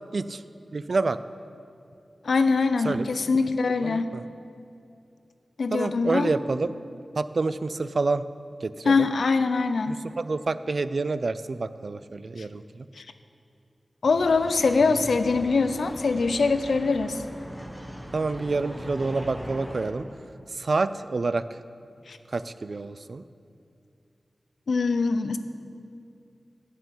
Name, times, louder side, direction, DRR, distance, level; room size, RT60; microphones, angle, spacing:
voice 1, 0.7-1.2 2.8-3.1 3.8-4.2 5.7-6.7 7.2-8.2 8.6-9.1 9.9-12.9 18.1-20.1 20.5-21.6 22.3-23.2, right 3 dB, 55° right, 14 dB, 0.3 m, -28 dB
voice 2, 2.2-4.1 5.6-6.3 8.8-10.0 13.0-13.1 14.0-17.2 22.1-22.2 24.7-25.4, left 4 dB, 85° left, 10 dB, 0.5 m, -23 dB
sound 1, 14.0-19.9, equal, ahead, 1.0 m, -40 dB
8.2 x 7.7 x 8.4 m, 2.5 s
wide cardioid pair, 100°, 0 cm